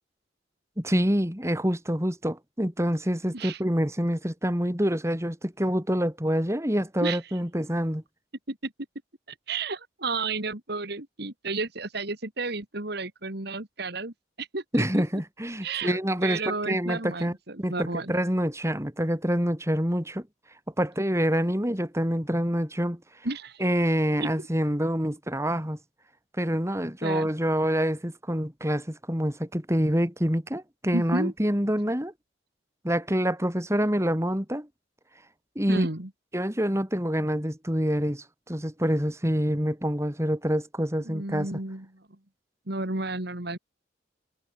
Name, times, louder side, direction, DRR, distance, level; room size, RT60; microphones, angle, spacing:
voice 1, 0.8-8.0 14.7-17.3 17.6-20.3 20.8-23.0 23.6-25.8 26.4-32.1 32.8-34.7 35.6-35.9 36.3-41.5, equal, 15° right, 3.9 m, -26 dB
voice 2, 9.5-15.0 15.6-18.1 23.2-23.6 24.2-24.3 27.0-27.3 30.9-31.3 35.7-36.1 41.1-42.0 42.7-43.6, right 3 dB, 55° right, 2.5 m, -32 dB
head